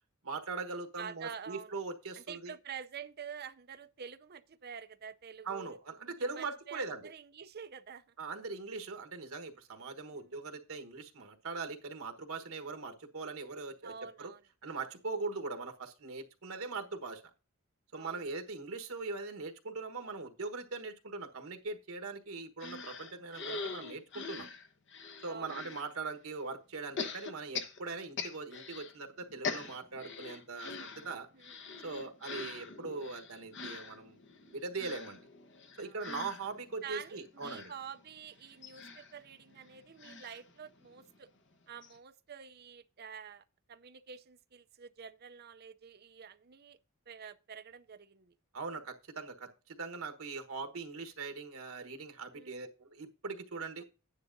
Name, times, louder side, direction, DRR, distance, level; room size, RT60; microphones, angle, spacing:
voice 1, 0.2-2.5 5.4-7.0 8.2-13.9 14.2-14.3 14.6-17.2 17.9-24.5 25.2-31.3 31.8-34.2 34.5-35.2 35.8-37.7 48.5-53.8, right 3 dB, 85° right, 1.3 m, -41 dB
voice 2, 1.0-1.8 2.2-5.8 6.3-8.1 10.1-10.3 13.8-14.9 18.0-18.3 25.2-25.5 31.3-31.6 35.8-36.0 36.8-41.3 41.7-46.8 47.1-48.4 52.3-52.6 53.8-53.9, right 7 dB, 50° right, 0.6 m, -48 dB
sound 1, 22.6-25.9 27.0-28.9 29.2-41.2 41.5-41.6 41.8-42.0, left 4 dB, 60° left, 1.1 m, -43 dB
11.5 x 9.8 x 2.6 m
head